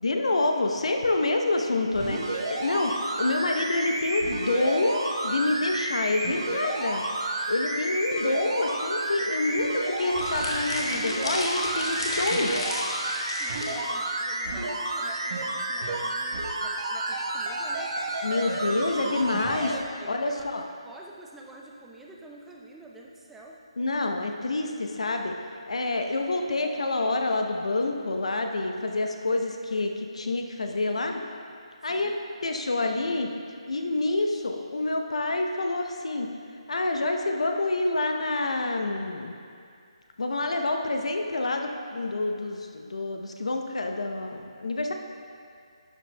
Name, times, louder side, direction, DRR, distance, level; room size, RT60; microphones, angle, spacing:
voice 1, 0.0-7.0 7.5-12.5 18.2-20.6 23.8-25.4 25.7-31.2 31.8-32.1 32.4-33.3 33.7-36.3 36.7-39.4 40.2-44.9, left 2 dB, 70° left, 4 dB, 0.8 m, -27 dB
sound 1, 1.9-19.8 20.4-20.5, right 2 dB, 45° right, 1.1 m, -31 dB
sound 2, 10.1-13.8, left 1 dB, 55° left, 1.5 m, -33 dB
voice 2, 13.1-17.9 20.0-23.6 31.8-32.2, right 2 dB, 5° right, -2 dB, 0.5 m, -48 dB
11.5 x 7.7 x 2.3 m, 2.3 s
figure-of-eight pair, 150°, 3 cm